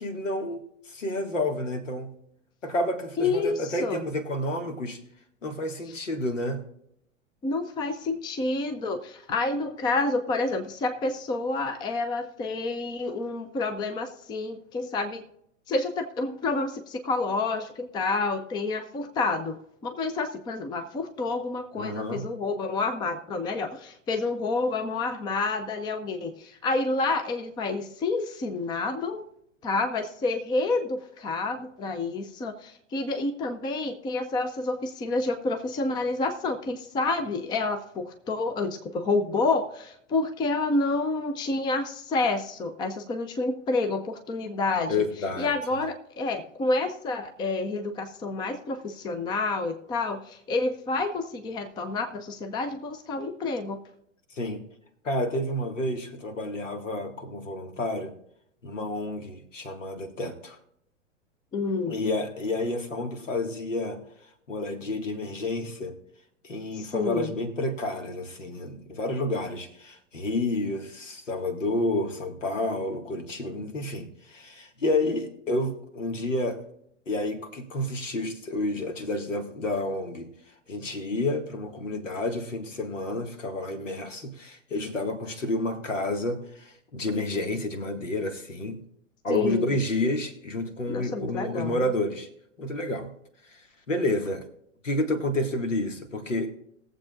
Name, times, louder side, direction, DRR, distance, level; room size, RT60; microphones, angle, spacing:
voice 1, 0.0-2.1 2.6-5.0 5.4-6.6 21.7-22.3 44.9-45.5 54.3-54.7 55.0-58.2 58.6-60.6 61.9-64.0 64.5-66.0 66.4-76.6 77.1-80.3 80.7-88.8 89.2-92.3 92.6-93.1 93.5-94.5 94.8-96.5, left 1 dB, 70° left, 6 dB, 2.0 m, -30 dB
voice 2, 3.2-4.0 7.4-15.2 15.7-29.3 29.6-45.0 45.4-53.8 61.5-61.9 66.7-67.3 89.3-89.7 90.9-91.8, left 3 dB, 10° left, 7 dB, 0.6 m, -29 dB
20.0 x 7.7 x 2.5 m, 0.73 s
figure-of-eight pair, 105°, 39 cm